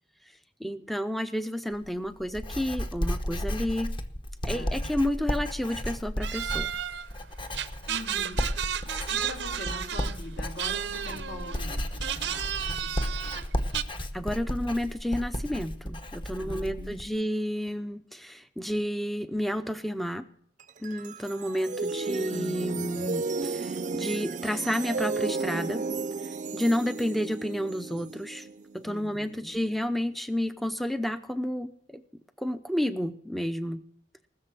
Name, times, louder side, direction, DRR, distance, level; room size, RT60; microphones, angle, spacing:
voice 1, 0.6-4.0 4.4-6.7 14.0-20.3 20.8-25.9 26.2-28.5 28.7-32.0 32.4-33.8, equal, ahead, 11 dB, 0.6 m, -31 dB
Writing, 1.7-17.1, equal, 30° left, 1.0 m, -34 dB
voice 2, 4.4-4.8 7.9-8.5 8.9-13.4 16.3-17.2 22.0-22.2 28.8-29.6, left 1 dB, 70° left, 3 dB, 3.4 m, -43 dB
sound 1, 6.2-7.1 7.5-10.2 10.6-11.6 11.9-13.8, right 9 dB, 85° right, 0.8 m, -32 dB
sound 2, 20.6-29.9, right 4 dB, 45° right, 0.6 m, -34 dB
19.5 x 6.8 x 7.6 m, 0.64 s
head